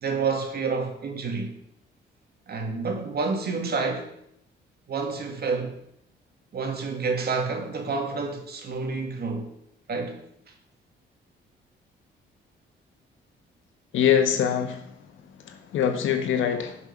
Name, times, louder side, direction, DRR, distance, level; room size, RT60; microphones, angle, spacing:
voice 1, 0.0-1.6 2.5-4.1 4.9-5.7 6.5-9.5 9.9-10.2, right 4 dB, 50° right, 2.3 m, -29 dB
voice 2, 13.9-14.8 15.5-16.8, left 8 dB, 80° left, 1.5 m, -23 dB
10.5 x 5.8 x 6.0 m
cardioid pair, 90°, 20 cm